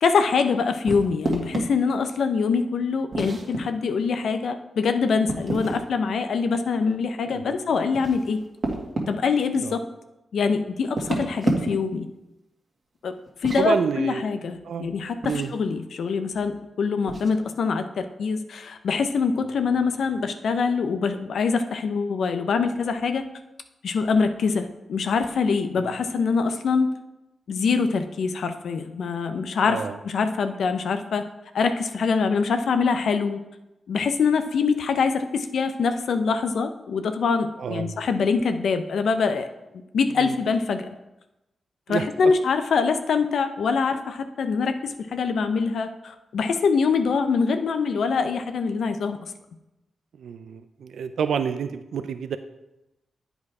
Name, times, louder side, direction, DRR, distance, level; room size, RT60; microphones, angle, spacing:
voice 1, 0.0-8.4 9.1-9.9 10.3-12.1 13.0-13.1 13.4-23.2 23.8-26.9 27.5-31.3 31.5-33.4 33.9-39.5 39.7-40.9 41.9-49.2, left 5 dB, 75° left, 8 dB, 0.6 m, -24 dB
sound 1, 0.9-1.7 3.1-3.6 5.3-5.8 7.7-9.1 10.8-11.9 13.3-13.7 15.2-15.5 17.1-17.3, right 2 dB, 50° right, 1.8 m, -28 dB
voice 2, 7.3-7.6 9.5-9.7 13.6-14.2 14.6-14.9 15.2-15.6 25.8-25.9 29.7-30.0 37.6-38.0 40.2-40.4 41.9-42.3 50.2-52.4, right 7 dB, 80° right, 10 dB, 0.4 m, -29 dB
8.3 x 5.1 x 4.7 m, 0.95 s
cardioid pair, 60°, 0 cm